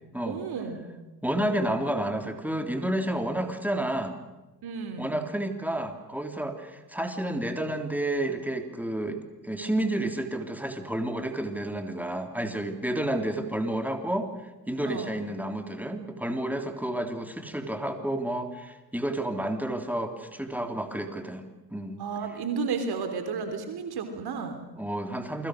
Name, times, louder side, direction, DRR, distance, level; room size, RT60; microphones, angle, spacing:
voice 1, 0.2-0.9 4.6-5.2 14.8-15.1 22.0-24.6, right 5 dB, 50° right, 7 dB, 3.4 m, -32 dB
voice 2, 1.2-4.2 5.0-14.3 14.7-22.0 24.8-25.5, right 1 dB, 5° right, 5 dB, 3.4 m, -30 dB
28.5 x 22.0 x 6.6 m, 1.1 s
hypercardioid pair, 60°, 49 cm